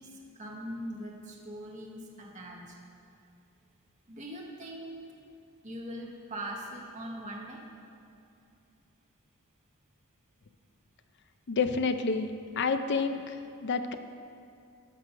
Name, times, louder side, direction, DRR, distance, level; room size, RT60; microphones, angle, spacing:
voice 1, 0.0-2.7 4.1-5.1 5.6-7.6, right 1 dB, 35° right, -2 dB, 1.2 m, -41 dB
voice 2, 11.5-14.0, left 4 dB, 50° left, 9 dB, 0.6 m, -29 dB
12.0 x 6.2 x 5.7 m, 2.6 s
head